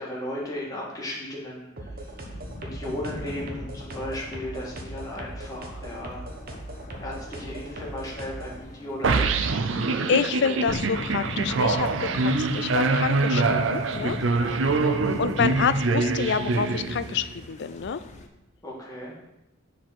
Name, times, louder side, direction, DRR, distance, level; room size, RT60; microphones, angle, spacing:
voice 1, 0.0-1.7 2.2-2.3 2.6-6.4 7.0-9.3 10.4-10.6 11.9-12.1 14.2-15.0 18.6-19.2, left 1 dB, 20° left, -5 dB, 2.1 m, -36 dB
sound 1, 1.8-8.6, right 1 dB, 50° right, 1.2 m, -39 dB
sound 2, 2.2-18.3, left 2 dB, 35° left, 0.7 m, -40 dB
sound 3, 9.0-17.3, right 3 dB, 70° right, 0.5 m, -24 dB
voice 2, 9.7-14.2 14.8-14.9 15.2-18.0, left 6 dB, 60° left, 13 dB, 0.4 m, -28 dB
7.4 x 4.4 x 5.8 m, 0.90 s
head